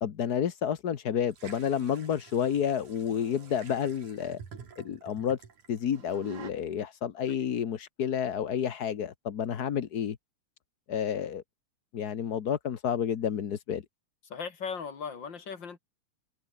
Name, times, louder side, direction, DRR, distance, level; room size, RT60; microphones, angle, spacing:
voice 1, 0.0-4.4 4.8-5.4 5.7-10.2 10.9-11.4 11.9-13.8, left 8 dB, 60° left, 1.0 m, -30 dB
sound 1, 1.3-6.5, right 6 dB, 80° right, 4.9 m, -49 dB
voice 2, 14.3-15.8, left 6 dB, 40° left, 3.1 m, -38 dB
open air
omnidirectional pair, 3.4 m